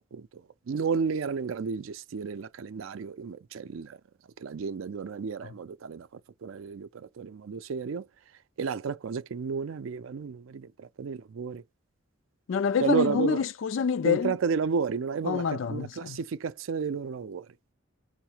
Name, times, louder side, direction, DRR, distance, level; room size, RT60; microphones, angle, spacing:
voice 1, 0.7-4.0 4.4-6.1 6.4-8.0 8.6-11.6 12.8-13.4 14.0-17.5, right 5 dB, 75° right, 0.4 m, -32 dB
voice 2, 12.5-14.4 15.2-16.2, left 6 dB, 70° left, 0.4 m, -27 dB
5.6 x 2.1 x 4.4 m
head